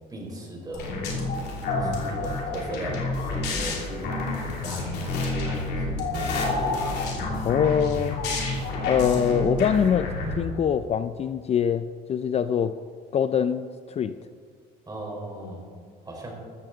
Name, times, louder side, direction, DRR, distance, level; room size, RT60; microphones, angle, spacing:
voice 1, 0.1-1.1 1.7-7.0 14.9-15.6 16.0-16.3, right 1 dB, 25° right, -1 dB, 4.1 m, -37 dB
sound 1, 0.7-10.3, left 2 dB, 80° left, 2.9 m, -29 dB
voice 2, 7.4-8.2 8.9-10.1 10.4-12.7 13.1-14.2, left 8 dB, 40° left, 12 dB, 0.4 m, -24 dB
14.0 x 13.5 x 3.9 m, 2.1 s
cardioid pair, 110°, 17 cm